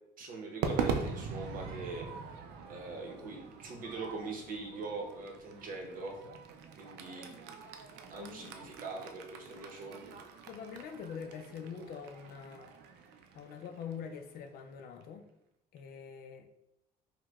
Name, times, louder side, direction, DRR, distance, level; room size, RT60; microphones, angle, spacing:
voice 1, 0.2-2.1 2.7-6.2 6.8-7.6 8.1-10.2, right 3 dB, 55° right, 1 dB, 0.8 m, -42 dB
Crowd / Fireworks, 0.6-15.0, right 5 dB, 85° right, 0.4 m, -42 dB
voice 2, 8.2-8.6 10.5-12.7 13.3-15.3 15.7-16.5, left 7 dB, 65° left, 6 dB, 0.4 m, -44 dB
4.6 x 2.1 x 2.3 m, 0.84 s
cardioid pair, 110°, 17 cm